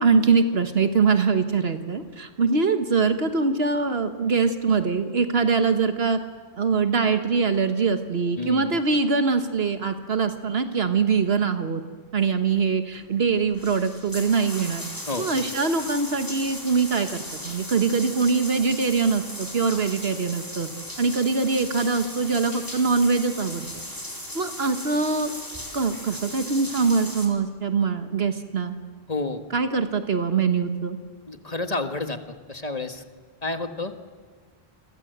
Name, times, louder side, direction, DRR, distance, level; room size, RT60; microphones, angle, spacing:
voice 1, 0.0-6.2 6.5-11.8 12.1-14.8 15.2-20.7 21.0-23.7 24.3-25.3 25.7-28.7 29.5-31.0, right 5 dB, 75° right, 8 dB, 1.6 m, -23 dB
voice 2, 8.4-8.7 15.1-15.3 29.1-29.4 31.3-33.0 33.4-33.9, left 3 dB, 40° left, 7 dB, 1.7 m, -30 dB
sound 1, 12.9-13.0 13.4-27.3, left 1 dB, 20° left, 4.1 m, -37 dB
28.5 x 22.5 x 8.0 m, 1.5 s
omnidirectional pair, 1.0 m